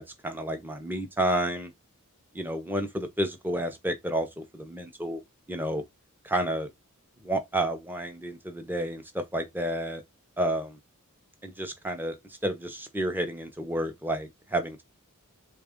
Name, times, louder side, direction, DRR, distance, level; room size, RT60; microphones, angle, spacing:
voice 1, 0.0-1.7 2.3-5.2 5.5-5.8 6.2-6.7 7.2-10.0 10.4-10.7 11.4-12.1 12.4-14.8, right 1 dB, 10° right, 0.7 m, -30 dB
3.5 x 2.4 x 3.6 m
head